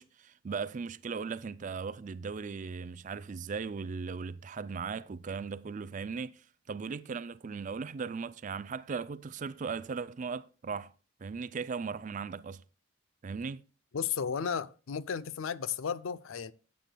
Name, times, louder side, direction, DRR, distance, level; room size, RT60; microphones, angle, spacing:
voice 1, 0.0-10.9 11.2-12.6 13.2-13.6, right 5 dB, 35° right, 0.3 m, -38 dB
voice 2, 13.9-16.5, left 7 dB, 70° left, 0.5 m, -34 dB
15.0 x 8.2 x 2.2 m
head